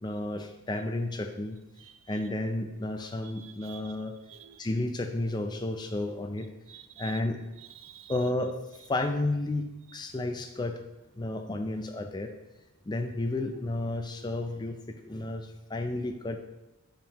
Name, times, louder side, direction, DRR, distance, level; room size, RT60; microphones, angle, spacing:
voice 1, 0.0-1.6 2.1-4.1 4.6-6.5 7.0-7.5 8.1-8.6 8.9-10.8 11.1-12.3 12.9-16.5, left 2 dB, 20° left, 6 dB, 0.4 m, -32 dB
voice 2, 1.8-2.3 3.2-4.0 4.3-4.7 6.7-7.2 7.6-8.2 9.9-10.0, right 11 dB, 60° right, 8 dB, 0.5 m, -50 dB
9.1 x 5.2 x 3.0 m, 0.98 s
head